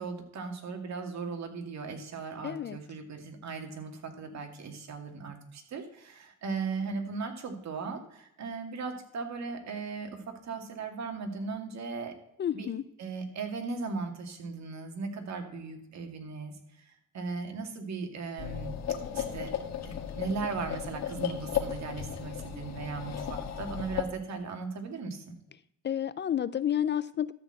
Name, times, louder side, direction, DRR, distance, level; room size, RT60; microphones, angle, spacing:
voice 1, 0.0-12.1 12.5-12.7 13.0-16.6 16.9-18.8 19.1-19.5 19.8-25.4, right 4 dB, 65° right, 4 dB, 2.2 m, -37 dB
voice 2, 2.4-2.8 12.4-12.8 25.8-27.3, left 10 dB, 35° left, 18 dB, 0.4 m, -30 dB
sound 1, 18.4-24.0, left 8 dB, 60° left, 1.5 m, -35 dB
13.0 x 4.5 x 7.8 m, 0.75 s
cardioid pair, 90°, 30 cm